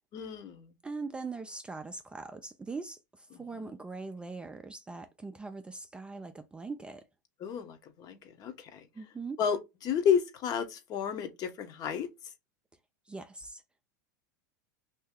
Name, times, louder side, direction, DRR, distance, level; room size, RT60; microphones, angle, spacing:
voice 1, 0.1-0.7 3.3-3.4 7.4-8.9 9.4-9.6 9.8-12.1, left 7 dB, 40° left, 0.9 m, -31 dB
voice 2, 0.8-7.0 8.9-9.4 13.1-13.6, right 4 dB, 10° right, 0.4 m, -41 dB
2.7 x 2.7 x 3.6 m
hypercardioid pair, 105°, 10 cm